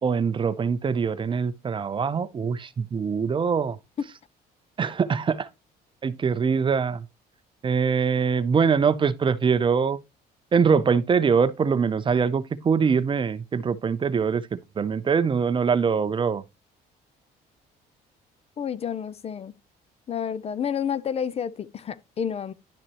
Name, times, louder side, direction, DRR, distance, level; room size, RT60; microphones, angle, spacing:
voice 1, 0.0-3.8 4.8-5.5 6.0-7.0 7.6-10.0 10.5-16.4, right 6 dB, 30° right, 0.5 m, -23 dB
voice 2, 18.6-19.5 20.1-22.5, left 8 dB, 35° left, 0.5 m, -30 dB
11.0 x 5.9 x 2.9 m
cardioid pair, 110°, 17 cm